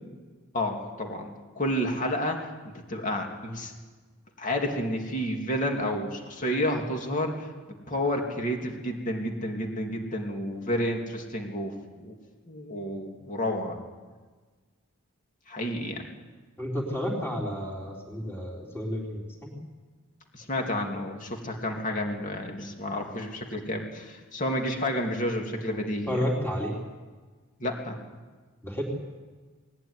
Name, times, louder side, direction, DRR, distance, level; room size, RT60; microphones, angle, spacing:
voice 1, 0.5-1.3 1.5-2.5 2.9-3.7 4.4-7.3 7.9-11.7 12.0-12.1 12.5-13.8 15.5-16.0 20.3-26.2 27.6-28.0, left 1 dB, 35° left, 2 dB, 2.8 m, -30 dB
voice 2, 16.6-19.5 26.1-26.7 28.6-28.8, equal, 10° left, -2 dB, 3.9 m, -31 dB
20.5 x 16.0 x 9.7 m, 1.4 s
head